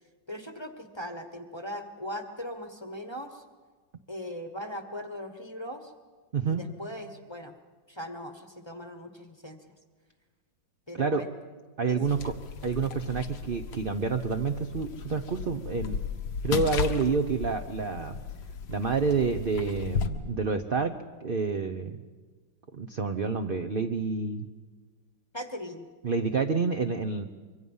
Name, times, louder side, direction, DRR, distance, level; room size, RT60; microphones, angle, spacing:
voice 1, 0.3-3.4 4.1-5.9 6.5-7.5 7.9-9.6 10.9-11.3 11.9-12.2 25.3-25.9, equal, 15° left, 7 dB, 1.0 m, -39 dB
voice 2, 11.8-12.3 12.6-16.0 16.4-18.2 18.7-20.9 21.2-22.0 22.7-24.5 26.0-27.2, right 4 dB, 55° right, 6 dB, 0.6 m, -28 dB
sound 1, 12.0-20.1, left 5 dB, 80° left, 1.9 m, -35 dB
25.5 x 24.0 x 5.5 m, 1.4 s
omnidirectional pair, 2.0 m